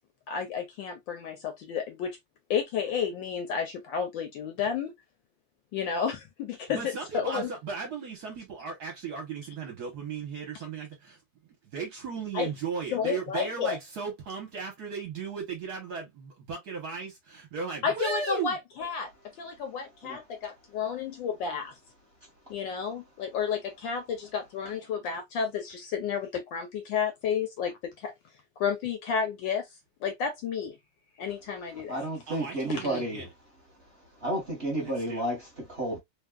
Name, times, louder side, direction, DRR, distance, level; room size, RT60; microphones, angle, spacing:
voice 1, 0.3-2.2 2.5-4.9 5.7-7.5 12.3-12.5 12.9-13.8 17.8-21.7 22.5-28.1 28.6-29.7 30.0-30.8 31.2-32.0 32.7-33.0, left 7 dB, 75° left, 1.2 m, -31 dB
voice 2, 6.7-11.2 11.6-18.6 32.3-33.3 34.7-35.2, right 5 dB, 60° right, 1.2 m, -36 dB
voice 3, 31.9-33.3 33.8-36.0, right 1 dB, 35° right, 1.1 m, -32 dB
3.5 x 2.3 x 2.2 m
omnidirectional pair, 2.4 m